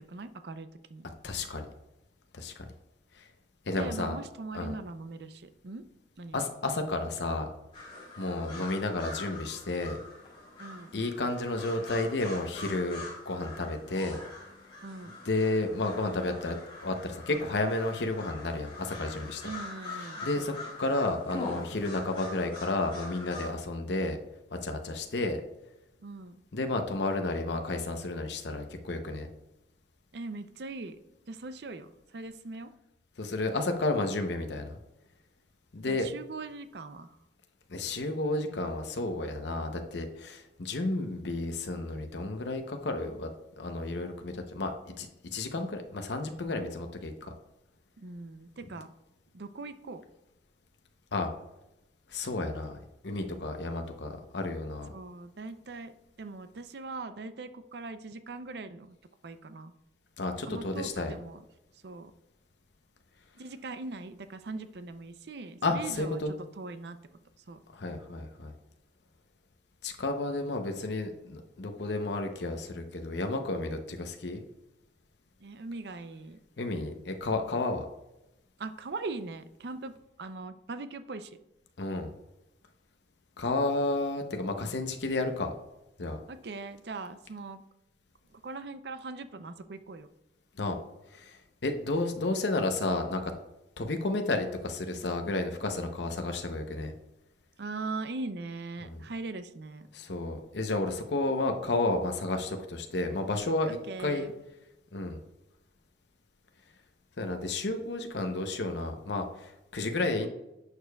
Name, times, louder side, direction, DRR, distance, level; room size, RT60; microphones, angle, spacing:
voice 1, 0.0-1.1 3.7-5.8 6.2-6.4 10.6-11.0 14.8-15.2 19.4-20.7 26.0-26.4 30.1-31.0 31.3-32.7 35.9-37.2 48.0-48.9 49.3-50.0 54.9-55.9 56.2-59.0 59.2-59.7 60.5-61.4 61.8-62.1 63.4-66.2 66.6-67.0 67.5-67.6 75.4-76.4 78.6-81.4 86.3-87.6 88.3-90.1 97.6-99.9 103.7-104.3, right 3 dB, 70° right, 11 dB, 0.5 m, -40 dB
voice 2, 1.2-1.7 2.3-2.6 3.7-4.2 4.5-4.7 6.3-7.5 8.2-10.0 10.9-14.2 15.2-16.6 16.8-19.4 20.2-20.5 20.8-24.2 24.5-25.4 26.5-29.3 33.2-34.8 35.7-36.1 37.7-43.3 43.6-47.3 51.1-51.3 52.1-52.8 53.0-54.9 60.2-61.1 65.6-66.3 67.7-68.5 69.8-74.4 76.6-77.8 81.8-82.1 83.4-85.5 86.0-86.2 90.6-90.8 91.1-91.4 91.6-93.3 93.8-96.9 98.8-99.0 99.9-103.7 104.0-104.3 104.9-105.2 107.2-110.3, left 2 dB, 80° left, 5 dB, 0.8 m, -32 dB
sound 1, 7.7-23.5, left 2 dB, 30° left, 3.1 m, -44 dB
11.0 x 6.6 x 2.3 m, 0.91 s
head